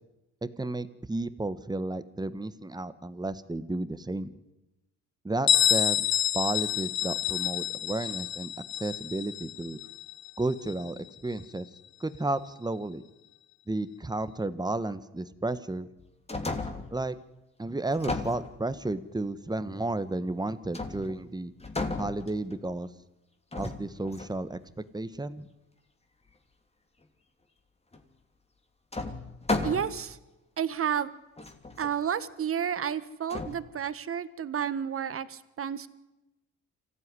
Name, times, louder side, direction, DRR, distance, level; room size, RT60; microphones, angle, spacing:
voice 1, 0.4-4.3 5.2-6.1 6.3-8.5 8.8-9.8 10.4-11.6 12.0-13.0 13.7-15.9 16.9-17.2 17.6-21.5 22.0-22.9 23.6-24.6 24.9-25.5, right 2 dB, 15° right, 14 dB, 1.3 m, -32 dB
Bell, 5.5-11.0, left 12 dB, 65° left, 0.9 m, -28 dB
sound 1, 16.0-17.0 17.9-19.0 20.7-21.3 21.6-22.7 23.5-24.4 27.9-28.0 28.9-30.1 30.8-30.9 31.4-31.9 33.3-33.6, left 3 dB, 20° left, 2.9 m, -34 dB
voice 2, 29.6-30.2 30.6-31.1 31.8-35.9, right 8 dB, 45° right, 15 dB, 1.4 m, -31 dB
25.5 x 15.5 x 9.8 m, 1.0 s
cardioid pair, 90°, 30 cm